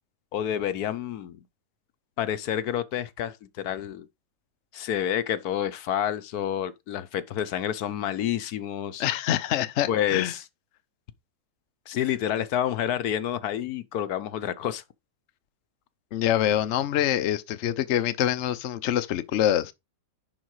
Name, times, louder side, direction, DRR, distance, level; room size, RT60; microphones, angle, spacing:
voice 1, 0.3-1.4 2.2-4.1 4.7-9.1 9.9-10.4 11.9-14.8, left 10 dB, 75° left, 1.3 m, -29 dB
voice 2, 9.0-10.3 16.1-19.7, left 11 dB, 60° left, 0.9 m, -25 dB
10.5 x 3.9 x 4.8 m
omnidirectional pair, 1.6 m